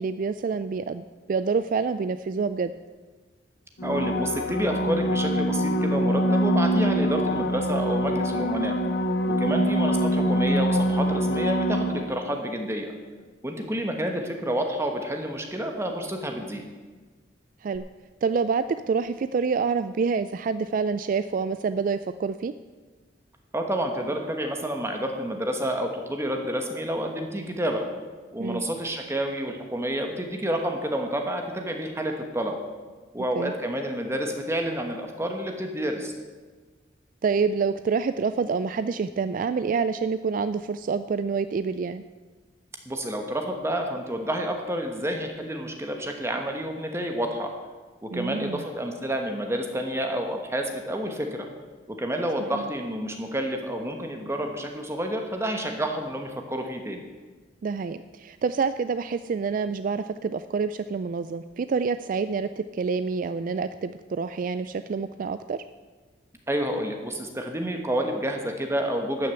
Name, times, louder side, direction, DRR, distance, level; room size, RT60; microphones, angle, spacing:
voice 1, 0.0-2.7 9.4-9.7 17.6-17.9 18.2-22.5 28.4-28.6 33.3-33.5 37.2-42.0 48.1-48.6 52.5-52.6 57.6-65.6, right 5 dB, 45° right, 12 dB, 0.3 m, -27 dB
sound 1, 3.8-12.4 17.8-17.9, equal, 60° left, 0.8 m, -25 dB
voice 2, 3.8-8.8 9.3-12.9 13.4-16.6 23.5-27.8 28.3-32.6 33.1-36.1 42.9-47.5 48.0-51.5 51.9-57.0 66.5-69.3, right 1 dB, 15° right, 3 dB, 1.1 m, -29 dB
12.5 x 6.4 x 8.2 m, 1.3 s
head